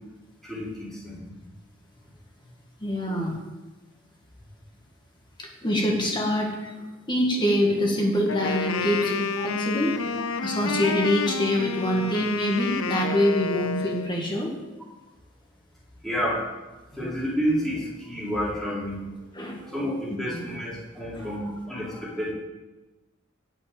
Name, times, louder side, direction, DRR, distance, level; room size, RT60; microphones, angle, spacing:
voice 1, 0.4-1.2 16.0-16.4 16.9-19.1 19.6-22.3, equal, ahead, -9 dB, 4.7 m, -30 dB
voice 2, 2.8-3.4 5.4-6.8 7.1-10.0 10.4-14.6 19.3-19.7 20.3-20.4 21.1-21.3, equal, 20° left, 0 dB, 1.7 m, -25 dB
Wind instrument woodwind instrument, 8.3-14.1, left 5 dB, 70° left, 0.7 m, -29 dB
8.9 x 7.7 x 8.6 m, 1.1 s
head